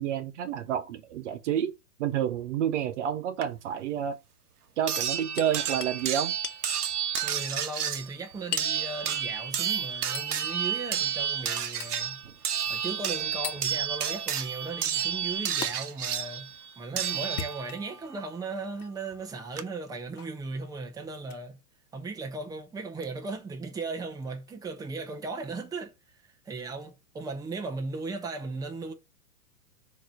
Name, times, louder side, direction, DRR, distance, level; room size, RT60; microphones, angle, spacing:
voice 1, 0.0-1.7 2.0-4.2 4.8-6.3, right 9 dB, 50° right, 0.9 m, -29 dB
sound 1, 3.4-3.5 4.9-17.9 19.1-19.2 19.6-19.7, right 9 dB, 75° right, 1.1 m, -31 dB
Hammer, 4.9-5.5 5.8-6.0 6.4-6.6 7.2-7.4 8.5-8.8 10.1-10.3 11.8-12.0 13.4-13.6 15.6-15.7 17.2-18.0 18.7-18.9 20.2-20.4 21.2-21.4 23.0-23.1, left 8 dB, 70° left, 1.1 m, -37 dB
voice 2, 7.2-12.2 12.7-16.5 16.8-21.6 21.9-28.9, right 3 dB, 10° right, 1.0 m, -37 dB
6.3 x 3.2 x 5.1 m
hypercardioid pair, 125°, 46 cm